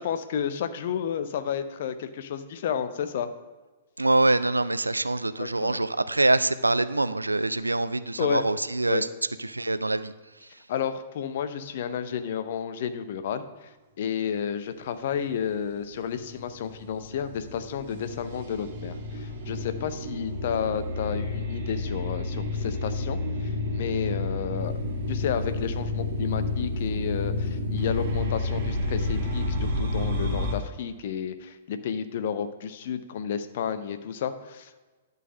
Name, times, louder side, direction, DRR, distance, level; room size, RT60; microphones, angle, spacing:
voice 1, 0.0-3.3 5.4-5.8 8.2-8.4 8.9-9.0 10.7-24.7 25.1-34.8, left 8 dB, 50° left, 11 dB, 0.6 m, -31 dB
voice 2, 4.0-9.1 9.4-10.1 10.4-10.6, right 2 dB, 80° right, 13 dB, 0.3 m, -25 dB
sound 1, 15.7-30.5, left 2 dB, 45° right, 1.3 m, -30 dB
11.0 x 4.0 x 5.1 m, 1.2 s
figure-of-eight pair, 110°, 0 cm